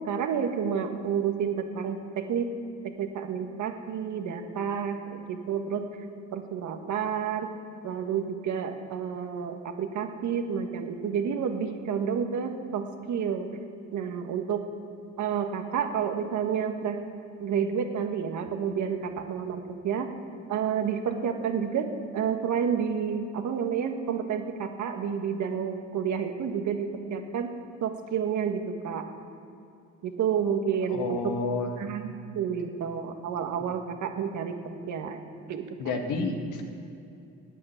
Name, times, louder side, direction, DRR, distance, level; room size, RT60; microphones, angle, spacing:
voice 1, 0.1-2.5 2.8-5.8 6.3-7.5 7.8-13.5 13.9-14.6 15.2-17.0 17.4-20.1 20.5-27.5 27.8-29.0 30.0-31.3 31.8-35.7, right 7 dB, 70° right, 5 dB, 1.6 m, -30 dB
voice 2, 30.9-31.7 35.8-36.6, left 4 dB, 85° left, 3 dB, 1.8 m, -30 dB
12.5 x 8.8 x 9.5 m, 2.6 s
cardioid pair, 90°, 30 cm